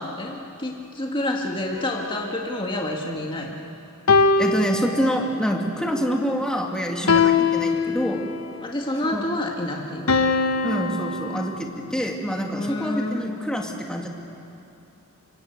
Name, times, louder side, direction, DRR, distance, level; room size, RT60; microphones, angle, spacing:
voice 1, 0.0-3.6 7.0-7.3 8.6-10.4 12.5-13.3, left 1 dB, 25° left, 0 dB, 1.8 m, -29 dB
sound 1, 1.8-3.5 4.1-5.5 7.1-8.5 10.1-11.6, left 4 dB, 85° left, 1.1 m, -23 dB
voice 2, 4.4-8.2 9.1-9.2 10.6-14.1, equal, 5° left, 0 dB, 2.4 m, -26 dB
25.0 x 25.0 x 8.1 m, 2.8 s
head